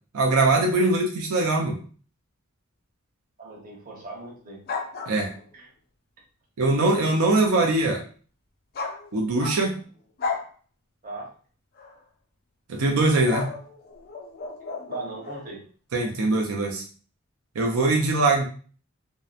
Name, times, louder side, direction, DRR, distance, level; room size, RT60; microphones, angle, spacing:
voice 1, 0.1-1.8 5.1-5.3 6.6-8.0 9.1-9.7 12.7-13.5 15.9-16.8 17.6-18.5, right 2 dB, 90° right, 1 dB, 0.5 m, -22 dB
voice 2, 3.4-4.6 5.5-5.7 11.0-11.3 14.9-15.6, right 2 dB, 40° right, -3 dB, 0.8 m, -38 dB
sound 1, 4.7-5.6 8.7-9.8 10.2-10.5 11.8-12.0 13.3-15.5, left 4 dB, 45° left, 0.4 m, -34 dB
2.8 x 2.0 x 2.4 m, 0.41 s
head